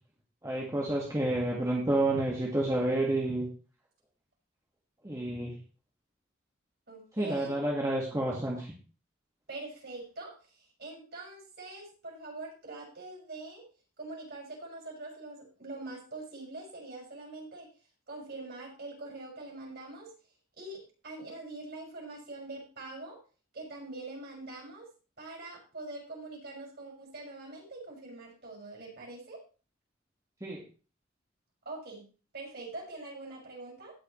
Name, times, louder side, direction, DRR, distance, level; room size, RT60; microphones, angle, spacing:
voice 1, 0.4-3.5 5.0-5.5 7.2-8.7 30.4-30.6, right 1 dB, 15° right, -3 dB, 1.8 m, -29 dB
voice 2, 6.9-7.5 9.5-13.6 14.0-17.7 18.1-20.1 20.6-23.2 23.5-24.9 25.2-29.4 31.6-32.1 32.3-33.9, right 2 dB, 55° right, -2 dB, 6.3 m, -44 dB
17.0 x 6.4 x 3.2 m, 0.37 s
head